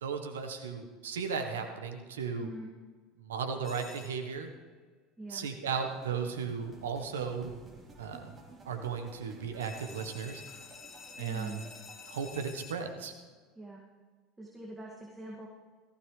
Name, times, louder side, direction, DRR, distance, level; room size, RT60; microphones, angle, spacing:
voice 1, 0.0-2.5 3.2-4.5 5.3-7.6 8.0-8.3 8.6-10.4 11.2-11.6 12.1-13.1, right 6 dB, 80° right, 6 dB, 1.3 m, -36 dB
voice 2, 2.3-2.7 5.2-5.5 11.2-11.6 13.6-13.8 14.4-15.5, right 1 dB, 10° right, -3 dB, 2.3 m, -44 dB
sound 1, 3.6-4.4 9.6-12.7, left 6 dB, 35° left, 1.5 m, -50 dB
sound 2, 5.9-12.5, right 3 dB, 25° right, 3.7 m, -55 dB
17.5 x 15.5 x 3.4 m, 1.4 s
hypercardioid pair, 75°, 0 cm